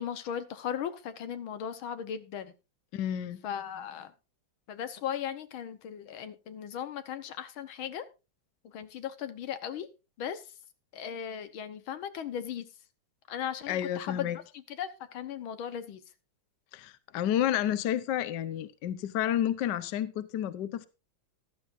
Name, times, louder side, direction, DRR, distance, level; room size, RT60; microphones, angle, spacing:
voice 1, 0.0-2.5 3.4-4.1 4.7-8.1 8.6-9.9 10.2-10.4 10.9-12.7 13.3-14.3 14.7-16.0, left 9 dB, 90° left, 1.9 m, -37 dB
voice 2, 2.9-3.4 13.7-14.4 16.7-20.9, left 11 dB, 65° left, 1.4 m, -30 dB
14.5 x 12.0 x 2.6 m
omnidirectional pair, 2.2 m